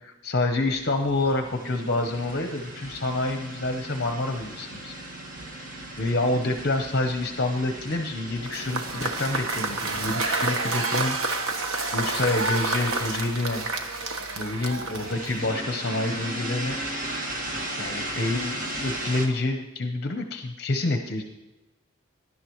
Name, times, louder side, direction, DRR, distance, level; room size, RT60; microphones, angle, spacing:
voice 1, 0.0-4.9 6.0-11.5 11.9-13.7 14.4-16.8 17.0-17.1 17.8-21.2, left 2 dB, 50° left, 5 dB, 0.8 m, -28 dB
sound 1, 0.7-19.3, right 1 dB, 40° right, 1.7 m, -37 dB
Cheering / Applause / Crowd, 8.5-15.5, right 3 dB, 85° right, 1.2 m, -29 dB
18.5 x 11.0 x 3.1 m, 1.1 s
head